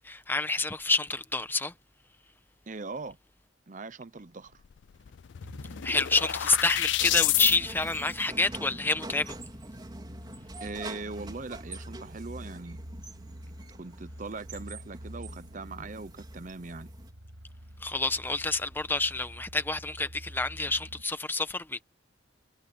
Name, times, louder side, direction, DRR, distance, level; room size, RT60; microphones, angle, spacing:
voice 1, 0.0-1.7 5.8-9.4 17.8-21.8, left 3 dB, 10° left, 1.0 m, -28 dB
voice 2, 2.7-3.2 3.7-4.6 10.6-12.8 13.8-16.9, right 3 dB, 40° right, 0.8 m, -40 dB
sound 1, 4.7-4.8 5.1-7.6, left 15 dB, 65° left, 0.4 m, -29 dB
sound 2, 5.4-21.0, equal, 85° right, 6.8 m, -48 dB
sound 3, 7.0-17.1, right 2 dB, 20° right, 4.2 m, -45 dB
head